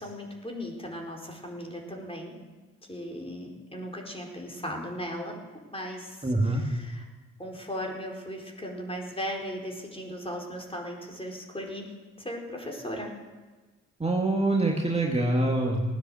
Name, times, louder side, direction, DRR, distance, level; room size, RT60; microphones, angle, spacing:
voice 1, 0.0-2.3 2.9-5.4 5.7-7.0 7.4-11.9 12.2-13.1, equal, 15° left, 0 dB, 4.5 m, -37 dB
voice 2, 6.2-6.6 14.0-15.8, right 2 dB, 20° right, -1 dB, 2.4 m, -25 dB
17.5 x 9.7 x 7.9 m, 1.3 s
supercardioid pair, 55°, 34 cm